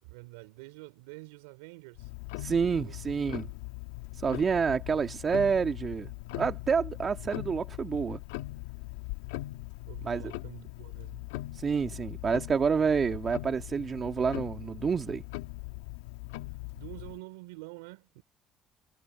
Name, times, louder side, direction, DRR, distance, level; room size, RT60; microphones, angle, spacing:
voice 1, 0.0-2.1 2.6-3.4 9.9-11.3 16.5-18.2, right 23 dB, 90° right, 3.5 m, -48 dB
Tick-tock, 2.0-17.2, left 19 dB, 90° left, 2.1 m, -40 dB
voice 2, 2.4-3.5 4.1-6.1 6.4-8.2 10.0-10.2 11.5-15.2, right 6 dB, 40° right, 1.8 m, -28 dB
supercardioid pair, 70°, 0 cm